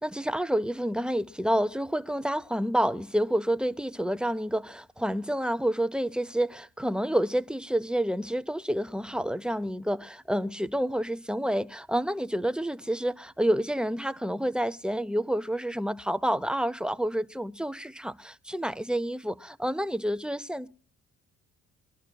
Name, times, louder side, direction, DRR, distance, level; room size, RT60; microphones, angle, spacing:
voice 1, 0.0-20.7, equal, 5° right, 0.6 m, -29 dB
24.0 x 11.5 x 2.3 m
cardioid pair, 90°, 30 cm